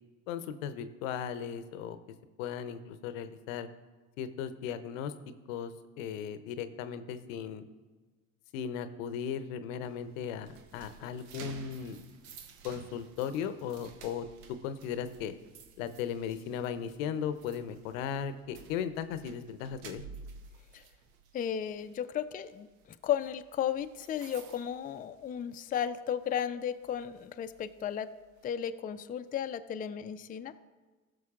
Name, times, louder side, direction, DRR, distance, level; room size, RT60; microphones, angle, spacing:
voice 1, 0.3-2.0 2.4-3.7 4.2-5.1 5.5-7.7 8.5-12.0 12.6-14.3 14.6-15.3 15.8-20.0, left 8 dB, 75° left, 11 dB, 0.7 m, -37 dB
sound 1, 9.8-25.7 26.1-26.4 26.8-28.5, right 6 dB, 70° right, 0.9 m, -53 dB
voice 2, 21.3-22.7 23.0-28.1 28.4-30.5, left 9 dB, 20° left, 9 dB, 0.4 m, -34 dB
16.5 x 6.3 x 2.4 m, 1.3 s
hypercardioid pair, 65°, 40 cm